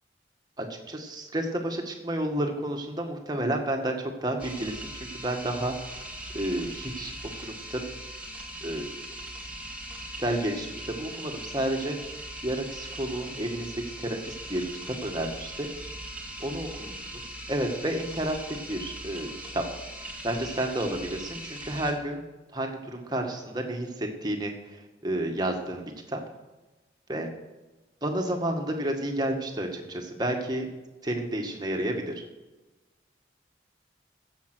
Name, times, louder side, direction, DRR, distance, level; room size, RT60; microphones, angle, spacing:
voice 1, 0.6-5.7 6.3-7.9 8.6-9.0 10.2-13.7 14.0-15.7 16.4-16.9 17.5-19.6 20.0-22.2 22.5-26.2 27.1-27.3 28.0-30.7 31.0-32.1, right 1 dB, 25° right, 2 dB, 1.8 m, -31 dB
sound 1, 4.4-21.9, right 1 dB, 10° right, 1.7 m, -40 dB
15.5 x 7.3 x 6.3 m, 1.1 s
head